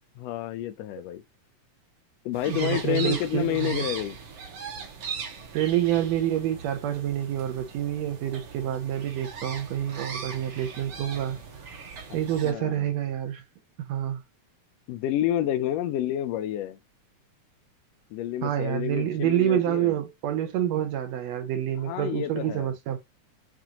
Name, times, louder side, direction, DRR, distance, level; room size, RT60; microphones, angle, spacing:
voice 1, 0.2-1.2 2.2-4.2 12.4-12.9 14.9-16.8 18.1-19.9 21.8-22.7, left 12 dB, 80° left, 1.5 m, -29 dB
sound 1, 2.3-12.5, right 5 dB, 60° right, 1.7 m, -39 dB
voice 2, 2.5-3.8 5.5-11.4 12.1-13.4 13.8-14.2 18.4-23.0, right 11 dB, 75° right, 1.7 m, -27 dB
7.3 x 2.5 x 2.8 m
omnidirectional pair, 3.4 m